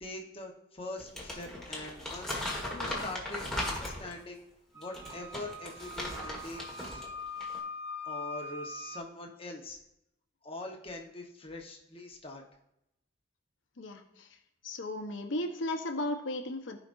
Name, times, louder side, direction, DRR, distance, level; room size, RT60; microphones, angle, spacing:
voice 1, 0.0-2.4 2.7-4.4 4.7-7.0 8.0-9.8 10.4-12.4, left 2 dB, 30° left, 2 dB, 1.1 m, -43 dB
Crumpling crinkling, 1.0-4.2 4.8-7.1 7.4-7.6, left 1 dB, ahead, 1.6 m, -38 dB
Wind instrument woodwind instrument, 4.7-9.1, left 3 dB, 15° right, 1.0 m, -42 dB
voice 2, 13.8-14.3 14.6-16.8, left 1 dB, 80° left, 5 dB, 1.0 m, -35 dB
15.0 x 5.1 x 2.6 m, 0.82 s
head